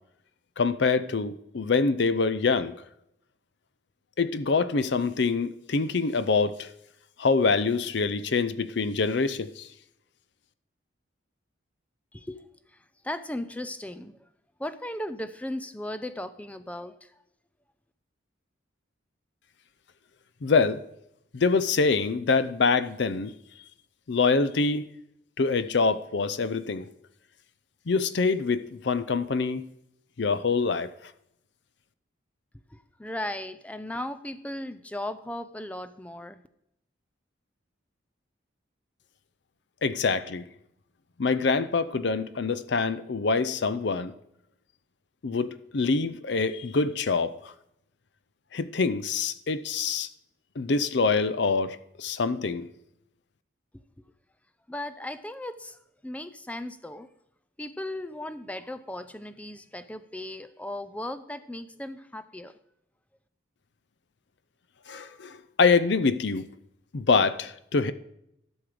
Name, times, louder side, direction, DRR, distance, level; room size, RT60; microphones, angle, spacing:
voice 1, 0.6-2.8 4.2-6.7 7.2-9.7 20.4-20.8 21.3-23.3 24.1-24.8 25.4-26.9 27.9-29.7 30.2-30.9 39.8-40.4 41.2-44.1 45.2-47.3 48.5-50.1 50.6-52.7 64.9-66.5 66.9-67.9, left 4 dB, 60° left, 0.5 m, -25 dB
voice 2, 12.1-12.4 13.0-14.2 14.6-17.1 32.7-36.4 54.7-57.1 57.6-62.5, left 1 dB, 5° left, 0.4 m, -37 dB
12.5 x 6.3 x 5.0 m
head